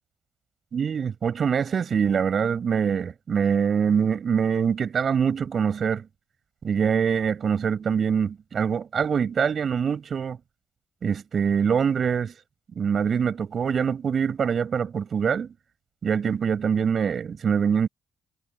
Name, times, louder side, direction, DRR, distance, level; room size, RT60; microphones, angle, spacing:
voice 1, 0.7-6.0 6.6-10.4 11.0-12.3 12.7-15.5 16.0-17.9, right 7 dB, 50° right, 6.8 m, -24 dB
cardioid pair, 90°, 0 cm